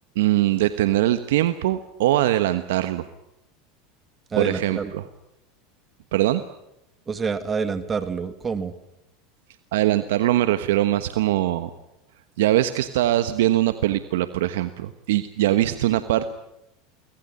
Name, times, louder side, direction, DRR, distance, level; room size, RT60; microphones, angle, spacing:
voice 1, 0.1-3.0 4.3-5.0 6.1-6.4 9.7-11.7 12.4-16.3, right 14 dB, 75° right, 11 dB, 1.2 m, -22 dB
voice 2, 4.3-4.9 7.1-8.7, right 5 dB, 25° right, 11 dB, 2.2 m, -27 dB
25.0 x 19.0 x 9.8 m, 0.86 s
hypercardioid pair, 95°, 0 cm